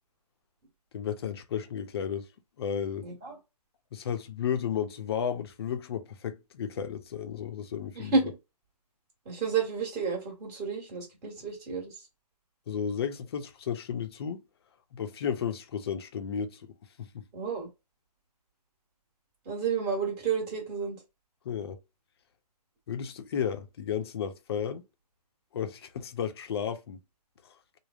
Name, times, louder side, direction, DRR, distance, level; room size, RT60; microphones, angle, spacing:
voice 1, 0.9-2.3 2.6-3.1 3.9-8.2 12.7-14.4 14.9-16.6 17.0-17.2 21.4-21.8 22.9-24.8 25.5-27.0, left 8 dB, 40° left, 0.5 m, -33 dB
voice 2, 3.0-3.4 8.0-8.3 9.2-11.9 17.3-17.7 19.4-21.0, right 5 dB, 20° right, 1.3 m, -30 dB
3.4 x 2.0 x 2.4 m
hypercardioid pair, 155°, 21 cm